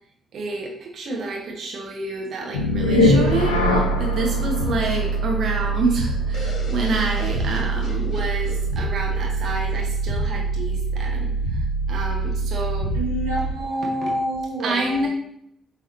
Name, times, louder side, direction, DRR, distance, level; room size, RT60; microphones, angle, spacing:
voice 1, 0.3-13.0 14.0-14.1 14.6-15.1, right 3 dB, 50° right, 0 dB, 1.2 m, -28 dB
sound 1, 2.5-13.7, right 1 dB, 80° left, 0.7 m, -23 dB
sound 2, 6.3-10.1, left 2 dB, 50° left, 1.8 m, -40 dB
voice 2, 12.9-15.1, equal, 80° right, -7 dB, 2.1 m, -27 dB
8.3 x 4.0 x 2.8 m, 0.71 s
figure-of-eight pair, 40°, 0 cm